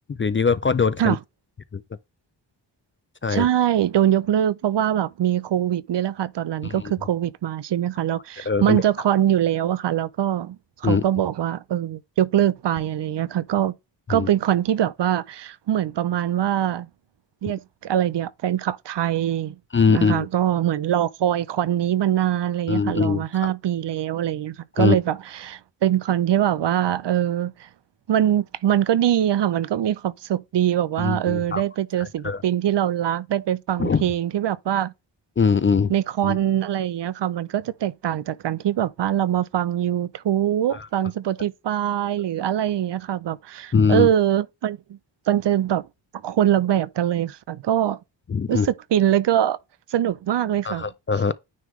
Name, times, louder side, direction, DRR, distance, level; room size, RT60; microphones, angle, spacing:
voice 1, 0.1-1.2 1.7-1.8 3.2-3.5 6.6-6.8 8.5-8.8 10.8-11.0 14.1-14.3 19.7-20.3 22.7-23.5 24.8-25.0 31.0-31.6 32.0-32.4 33.8-34.0 35.4-35.9 36.2-36.4 40.7-40.9 43.7-44.1 48.3-48.7 50.6-51.3, left 5 dB, 30° left, 0.4 m, -21 dB
voice 2, 3.3-10.6 10.8-13.7 14.1-16.9 17.4-19.6 19.9-27.7 28.1-34.9 35.9-45.0 45.3-45.8 46.2-48.0 48.5-49.6 49.9-50.9, right 11 dB, 65° right, 0.5 m, -23 dB
9.4 x 3.5 x 3.1 m
wide cardioid pair, 85°, 45 cm